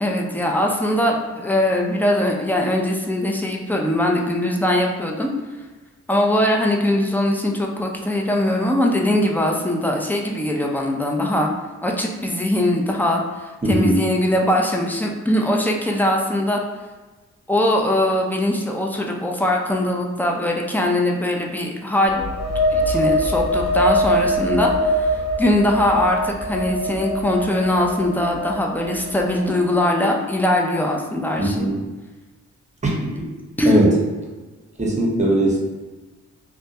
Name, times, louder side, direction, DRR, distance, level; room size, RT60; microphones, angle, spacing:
voice 1, 0.0-5.3 6.1-11.5 11.8-16.6 17.5-22.2 22.5-31.7 33.6-33.8, left 1 dB, 5° left, 0 dB, 0.4 m, -21 dB
voice 2, 13.6-14.1 31.4-31.8 32.8-33.1 33.6-33.9 34.8-35.6, right 1 dB, 25° right, -3 dB, 0.8 m, -19 dB
sound 1, 22.0-29.6, equal, 55° left, 0.8 m, -23 dB
2.3 x 2.1 x 2.7 m, 1.3 s
cardioid pair, 50°, 31 cm